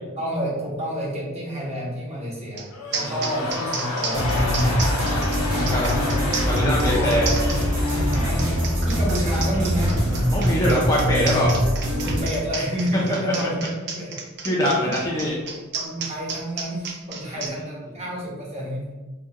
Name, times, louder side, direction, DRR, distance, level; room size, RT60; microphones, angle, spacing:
voice 1, 0.0-5.0 5.5-6.4 6.7-7.3 8.1-8.5 8.8-10.0 12.0-14.6 14.8-15.2 15.7-18.9, equal, 30° right, -5 dB, 0.9 m, -30 dB
sound 1, 2.6-2.7 2.9-17.5, right 5 dB, 50° right, 0.4 m, -32 dB
sound 2, 2.7-10.8 11.0-11.1, left 2 dB, 80° left, 0.6 m, -31 dB
voice 2, 2.9-3.5 5.6-5.9 6.5-7.4 10.3-11.6 12.9-13.3 14.4-15.3 17.3-17.4, equal, 15° left, -5 dB, 0.4 m, -23 dB
sound 3, 4.1-12.2, equal, 70° right, 0.9 m, -23 dB
3.5 x 2.2 x 2.8 m, 1.2 s
head